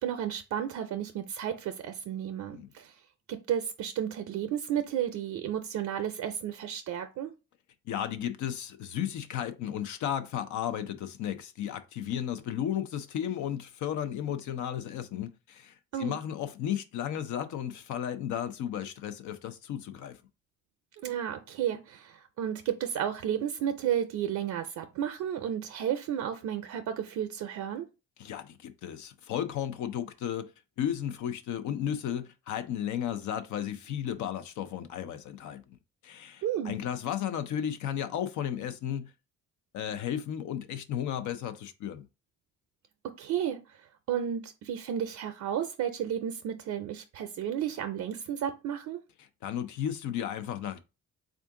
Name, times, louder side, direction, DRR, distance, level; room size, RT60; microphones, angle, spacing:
voice 1, 0.0-2.9 3.3-7.3 15.9-16.2 21.0-27.9 36.4-36.7 43.2-43.6 44.1-49.0, right 9 dB, 70° right, 0.5 m, -32 dB
voice 2, 7.9-20.2 28.2-30.5 30.8-35.8 36.0-39.1 39.7-42.0 49.2-50.8, left 10 dB, 75° left, 0.6 m, -34 dB
3.5 x 2.5 x 3.6 m
cardioid pair, 90°, 30 cm